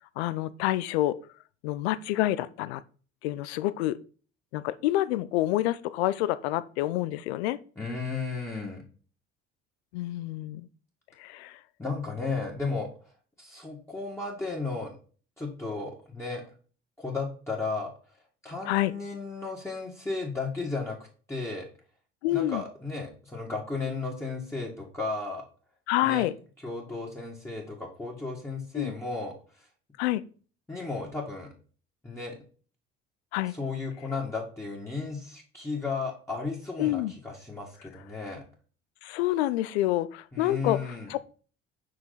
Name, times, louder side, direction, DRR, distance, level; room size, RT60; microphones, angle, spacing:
voice 1, 0.2-1.2 1.6-2.8 3.2-4.0 4.5-7.6 9.9-10.7 11.2-11.6 18.7-18.9 22.2-22.6 25.9-26.3 28.7-28.9 30.0-30.2 33.3-33.5 36.8-37.1 39.0-41.2, left 15 dB, 80° left, 0.5 m, -27 dB
voice 2, 7.8-8.8 11.8-12.9 13.4-15.0 15.4-16.4 17.0-17.9 18.4-21.0 21.3-21.7 22.3-25.4 26.0-26.3 26.6-29.7 30.7-31.5 32.0-32.4 33.5-38.4 40.3-41.1, left 3 dB, 10° left, 2.0 m, -34 dB
5.7 x 5.0 x 4.0 m
hypercardioid pair, 60°, 31 cm